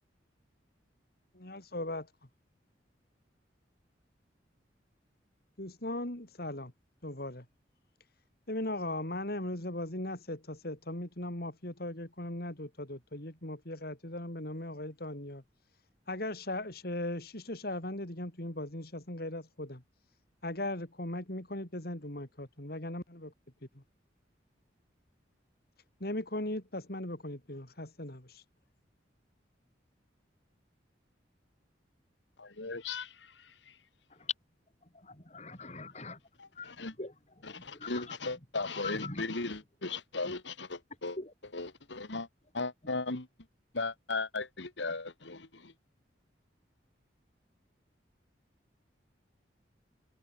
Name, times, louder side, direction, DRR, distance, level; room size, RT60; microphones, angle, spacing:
voice 1, 1.3-2.1 5.6-6.7 7.0-7.5 8.5-15.4 16.1-19.8 20.4-23.3 23.8-23.9 26.0-28.4, left 1 dB, 55° left, 3.7 m, -38 dB
voice 2, 32.4-33.1 36.8-36.9 37.6-41.2 41.5-42.3 42.5-43.3 43.7-45.7, left 3 dB, 80° left, 2.1 m, -36 dB
voice 3, 34.8-36.2 36.5-38.5 38.7-39.3 40.3-40.4 41.2-41.3 42.8-42.9, left 4 dB, 35° left, 4.7 m, -43 dB
head